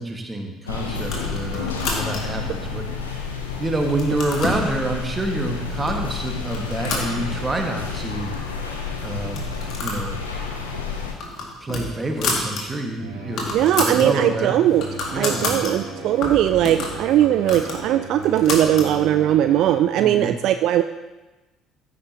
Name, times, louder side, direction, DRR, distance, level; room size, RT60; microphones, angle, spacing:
voice 1, 0.0-2.8 3.6-8.3 9.0-9.5 9.8-10.2 11.6-14.6 15.1-15.5 20.0-20.4, right 2 dB, 20° right, 3 dB, 1.7 m, -27 dB
sound 1, 0.7-11.1, left 4 dB, 80° left, 1.0 m, -30 dB
sound 2, 1.0-2.4 3.0-3.5 3.8-4.6 5.4-5.5 5.9-6.1 6.5-7.7 8.0-8.1 8.4-8.5 9.2-10.1 10.4-10.6 11.0-12.6 13.0-13.1 13.2-14.1 14.5-15.7 16.2-18.9, left 3 dB, 50° left, 2.1 m, -29 dB
sound 3, 13.0-19.7, right 2 dB, 75° right, 2.1 m, -36 dB
voice 2, 13.5-14.9 15.2-20.8, right 12 dB, 55° right, 10 dB, 0.3 m, -19 dB
15.0 x 8.4 x 2.9 m, 1.1 s
figure-of-eight pair, 55°, 0 cm